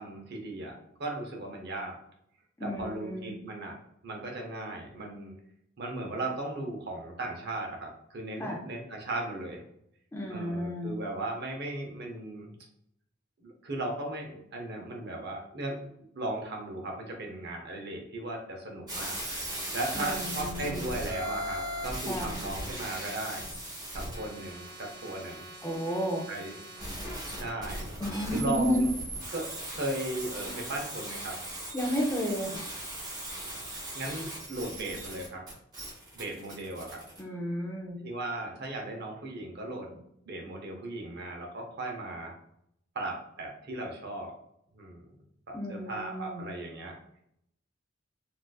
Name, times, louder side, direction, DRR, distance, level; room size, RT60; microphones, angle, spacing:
voice 1, 0.0-2.0 2.6-3.8 4.0-5.3 5.8-9.6 10.3-12.6 13.4-15.9 16.2-19.2 19.7-23.5 23.9-25.5 26.3-26.6 27.4-27.8 28.3-28.9 29.3-31.4 33.9-35.4 36.1-37.0 38.0-40.0 40.3-42.4 42.9-44.3 44.7-45.0 45.5-47.0, right 2 dB, 55° right, 1 dB, 0.7 m, -37 dB
voice 2, 2.6-3.3 8.4-8.6 10.1-11.0 19.9-20.8 22.1-22.3 25.6-26.3 28.0-28.9 31.7-32.7 37.2-38.0 45.5-46.4, equal, 15° left, 0 dB, 0.4 m, -32 dB
sound 1, 18.9-37.2, right 1 dB, 20° right, 1.2 m, -38 dB
3.7 x 2.5 x 2.3 m, 0.73 s
head